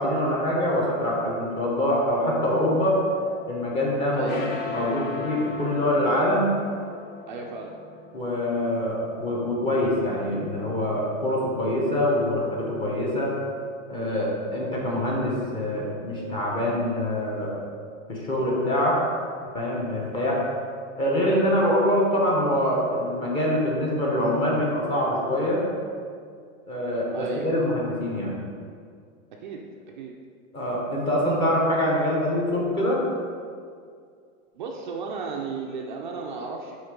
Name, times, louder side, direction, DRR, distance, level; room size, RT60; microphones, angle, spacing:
voice 1, 0.0-3.0 3.5-6.5 8.1-13.3 13.9-17.5 18.1-19.0 19.5-20.4 21.0-25.6 26.7-28.4 30.5-33.1, left 1 dB, 10° left, -3 dB, 0.7 m, -24 dB
sound 1, 2.9-11.5, left 4 dB, 70° left, 1.2 m, -40 dB
voice 2, 4.1-4.4 7.3-7.7 27.1-27.5 29.4-29.6 29.9-30.1 34.5-36.8, right 5 dB, 35° right, 0 dB, 0.5 m, -34 dB
8.0 x 3.7 x 5.2 m, 2.2 s
supercardioid pair, 170°, 40 cm